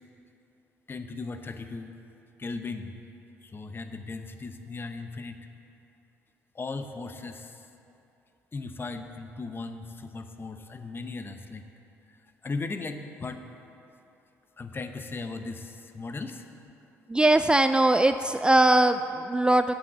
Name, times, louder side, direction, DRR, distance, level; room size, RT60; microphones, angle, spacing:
voice 1, 0.9-2.0 2.4-3.0 3.4-5.5 6.5-7.6 8.5-11.7 12.1-12.2 12.4-13.4 14.6-16.4, left 3 dB, 30° left, 7 dB, 0.9 m, -37 dB
voice 2, 17.1-19.7, right 2 dB, 15° right, 9 dB, 0.3 m, -21 dB
8.6 x 7.9 x 6.8 m, 2.9 s
hypercardioid pair, 55°, 7 cm